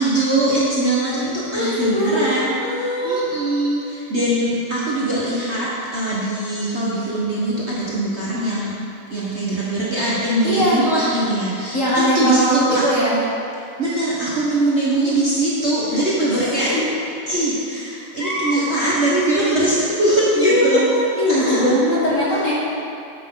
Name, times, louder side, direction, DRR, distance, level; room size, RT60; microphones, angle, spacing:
voice 1, 0.0-8.7 9.1-12.8 13.8-16.7 17.3-20.8 21.3-21.7, right 1 dB, 40° right, -8 dB, 1.2 m, -21 dB
voice 2, 1.5-3.2 10.4-10.8 11.7-13.2 15.9-16.0 16.3-16.8 18.2-18.6 20.3-22.5, equal, 40° left, -6 dB, 1.4 m, -21 dB
9.9 x 7.5 x 3.8 m, 2.7 s
omnidirectional pair, 2.4 m